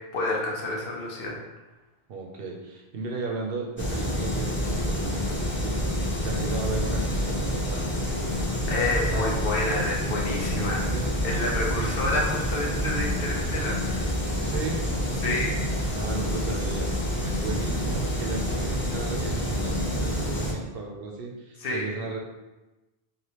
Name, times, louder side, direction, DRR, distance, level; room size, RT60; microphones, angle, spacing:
voice 1, 0.1-1.4 8.7-10.9 11.2-14.2 15.2-15.8 21.6-21.8, left 2 dB, 70° left, -2 dB, 0.9 m, -29 dB
voice 2, 2.1-8.1 10.5-11.2 11.7-11.9 14.3-14.9 15.9-22.2, right 3 dB, 70° right, 0 dB, 0.8 m, -35 dB
sound 1, 3.8-20.5, equal, 20° left, 0.3 m, -28 dB
3.3 x 2.5 x 2.8 m, 1.1 s
omnidirectional pair, 1.0 m